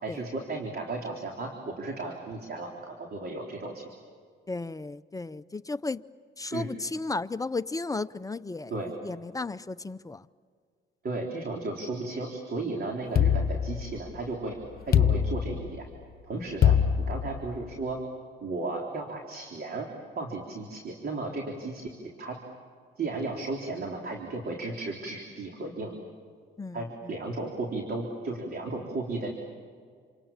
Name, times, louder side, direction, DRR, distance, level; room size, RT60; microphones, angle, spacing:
voice 1, 0.0-3.8 6.5-6.7 8.7-8.9 11.0-14.6 14.9-15.9 16.2-16.8 17.1-18.0 18.4-19.9 20.2-21.9 22.2-22.4 23.0-26.0 26.7-29.3, right 3 dB, 50° right, 3.9 m, -34 dB
voice 2, 4.5-6.0 6.4-10.3 12.7-12.8 16.3-16.5 26.6-27.2, left 3 dB, 15° left, 0.6 m, -35 dB
sound 1, 13.2-14.3 14.9-16.0 16.6-17.7, left 8 dB, 50° left, 1.1 m, -24 dB
28.5 x 27.5 x 7.4 m
cardioid pair, 90°, 20 cm